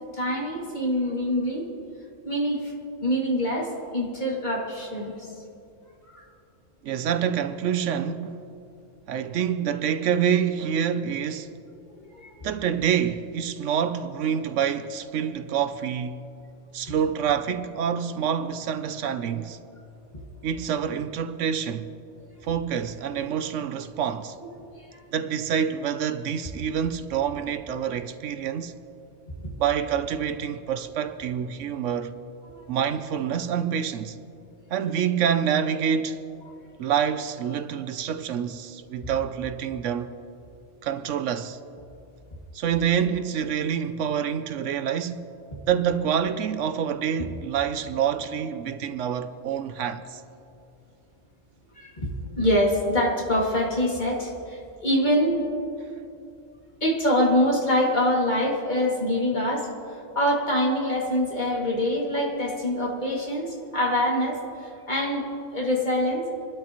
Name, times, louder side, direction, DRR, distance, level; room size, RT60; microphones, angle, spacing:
voice 1, 0.1-1.7 2.3-2.7 3.0-5.3 6.1-6.3 11.9-12.3 24.8-24.9 32.5-32.6 51.8-52.1 52.4-55.5 56.8-65.3 65.5-66.3, left 1 dB, 35° left, 2.4 m, -25 dB
voice 2, 6.8-8.4 9.1-11.5 12.4-16.2 16.7-19.6 20.4-21.9 22.4-24.4 25.1-28.8 29.6-32.1 32.7-34.2 34.7-36.2 36.8-40.2 40.8-41.6 42.5-45.3 45.7-50.2, right 8 dB, 75° right, 0.9 m, -27 dB
27.5 x 12.5 x 3.0 m
omnidirectional pair, 1.3 m